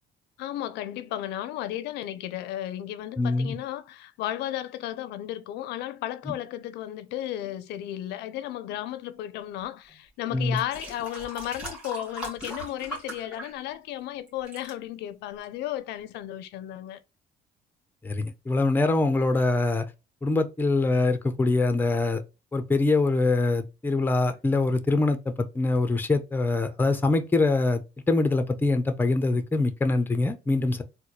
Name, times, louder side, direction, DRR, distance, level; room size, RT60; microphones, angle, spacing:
voice 1, 0.4-17.0, left 13 dB, 85° left, 0.5 m, -34 dB
voice 2, 3.2-3.6 10.3-10.6 18.0-19.9 20.2-22.2 22.5-30.8, left 3 dB, 10° left, 0.5 m, -24 dB
sound 1, 9.9-10.0 10.5-14.0 14.3-14.7 15.4-15.5, right 1 dB, 5° right, 1.8 m, -39 dB
4.1 x 2.1 x 2.9 m
cardioid pair, 110°, 17 cm